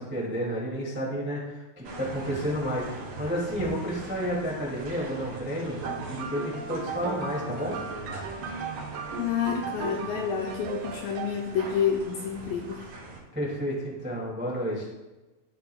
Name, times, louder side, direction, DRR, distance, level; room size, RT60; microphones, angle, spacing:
voice 1, 0.0-5.8 6.1-7.8 13.3-14.9, equal, 10° right, -5 dB, 0.6 m, -31 dB
sound 1, 1.8-13.2, right 2 dB, 55° right, 3.5 m, -41 dB
sound 2, 5.8-11.6, right 5 dB, 90° right, 1.8 m, -37 dB
voice 2, 9.2-12.9, left 7 dB, 90° left, 1 dB, 2.0 m, -29 dB
15.0 x 5.1 x 2.3 m, 1.1 s
omnidirectional pair, 4.5 m